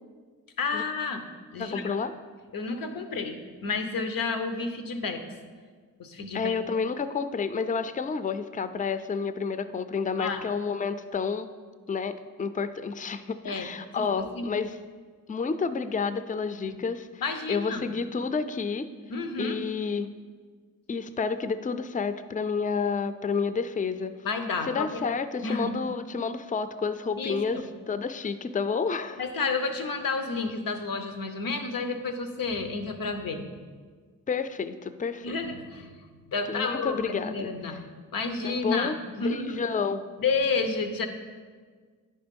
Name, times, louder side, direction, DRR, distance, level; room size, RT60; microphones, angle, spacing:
voice 1, 0.6-1.2 1.5-1.9 2.5-5.2 6.0-6.5 10.2-10.4 13.4-13.7 13.9-14.5 16.6-16.8 17.2-17.8 19.1-19.6 24.2-25.0 25.4-25.8 27.2-27.6 29.2-33.6 35.2-37.8 38.1-38.9 39.2-39.7 40.2-41.1, left 4 dB, 85° left, 7 dB, 0.8 m, -30 dB
voice 2, 1.6-2.1 6.3-11.5 11.9-14.7 15.3-17.1 17.5-18.9 19.4-20.1 20.9-24.1 24.7-29.2 34.3-35.4 36.5-37.5 38.4-40.0, left 5 dB, 25° left, 11 dB, 0.4 m, -30 dB
10.0 x 4.3 x 5.2 m, 1.5 s
cardioid pair, 70°, 33 cm